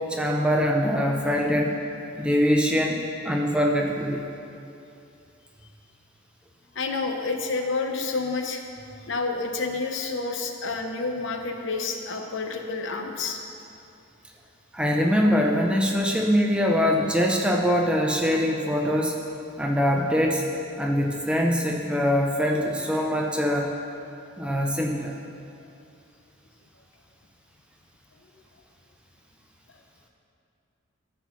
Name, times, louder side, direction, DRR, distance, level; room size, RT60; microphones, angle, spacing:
voice 1, 0.1-1.8 2.2-4.2 14.7-19.2 19.6-20.4 20.8-23.7 24.4-25.1, equal, 5° right, 0 dB, 0.6 m, -23 dB
voice 2, 6.7-8.6 9.1-13.4, left 3 dB, 60° left, 4 dB, 0.8 m, -29 dB
13.0 x 4.6 x 5.8 m, 2.6 s
head